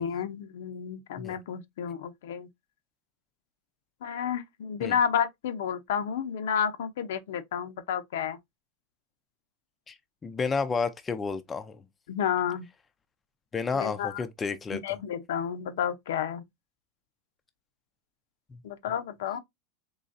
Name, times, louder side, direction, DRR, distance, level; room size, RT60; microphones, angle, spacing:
voice 1, 0.0-2.5 4.0-8.4 12.1-12.7 13.7-14.2 14.7-16.4 18.6-19.4, left 8 dB, 85° left, 0.6 m, -31 dB
voice 2, 10.2-11.8 13.5-14.8 18.5-18.6, left 4 dB, 15° left, 0.3 m, -31 dB
3.9 x 3.1 x 2.5 m
supercardioid pair, 160°, 0 cm